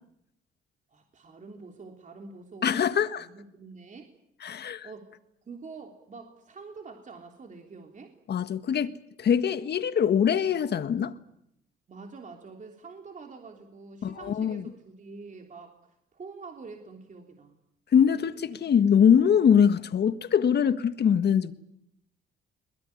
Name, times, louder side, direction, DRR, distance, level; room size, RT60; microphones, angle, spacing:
voice 1, 0.9-2.9 3.2-4.0 4.8-5.1 5.5-8.1 11.9-17.6, right 4 dB, 40° right, 3.5 m, -46 dB
voice 2, 2.6-3.2 4.4-4.9 8.3-11.1 14.0-14.7 17.9-21.5, left 8 dB, 55° left, 1.7 m, -23 dB
23.0 x 21.0 x 9.9 m
cardioid pair, 90°, 20 cm